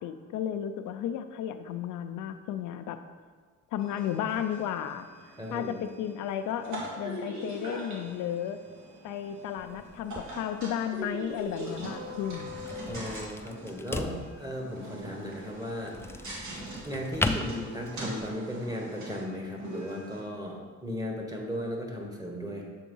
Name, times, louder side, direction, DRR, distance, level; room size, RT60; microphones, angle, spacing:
voice 1, 0.0-3.0 3.7-5.1 5.5-8.6 9.0-12.5, left 9 dB, 90° left, 8 dB, 0.5 m, -33 dB
sound 1, 3.8-20.2, right 1 dB, 70° right, 1.9 m, -42 dB
voice 2, 5.4-5.8 12.9-16.0 16.8-22.6, equal, 10° right, 0 dB, 1.4 m, -36 dB
sound 2, 9.6-18.3, left 2 dB, 10° left, 0.3 m, -38 dB
6.9 x 3.7 x 5.4 m, 1.5 s
cardioid pair, 90°, 30 cm